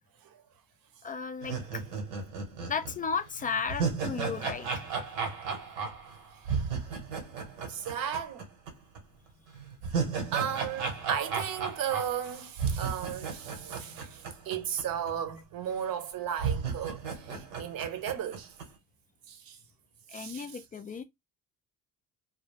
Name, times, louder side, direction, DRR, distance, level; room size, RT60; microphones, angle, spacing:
voice 1, 1.0-1.8 2.7-4.9 6.5-6.6 17.3-17.5 20.1-21.0, left 5 dB, 20° left, 0.3 m, -35 dB
sound 1, 1.4-8.7 9.0-9.1 9.5-14.8 15.1-15.2 15.9-16.0 16.4-18.6, right 5 dB, 80° right, 1.0 m, -34 dB
voice 2, 7.7-8.4 10.3-17.0 17.3-18.5 19.3-19.6 20.1-20.5, right 9 dB, 50° right, 0.7 m, -35 dB
2.2 x 2.1 x 3.3 m
hypercardioid pair, 50°, 43 cm